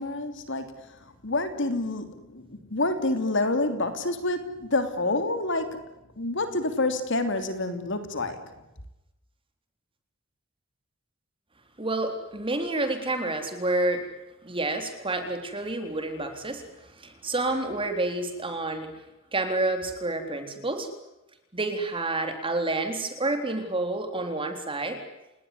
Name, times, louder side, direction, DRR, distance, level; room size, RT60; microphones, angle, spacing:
voice 1, 0.0-5.8 6.2-8.5, left 2 dB, 60° left, 9 dB, 3.1 m, -28 dB
voice 2, 11.8-14.0 14.4-16.6 17.0-18.9 19.3-20.9 21.5-25.0, right 2 dB, 25° right, 7 dB, 3.9 m, -29 dB
29.5 x 19.0 x 9.8 m, 0.94 s
head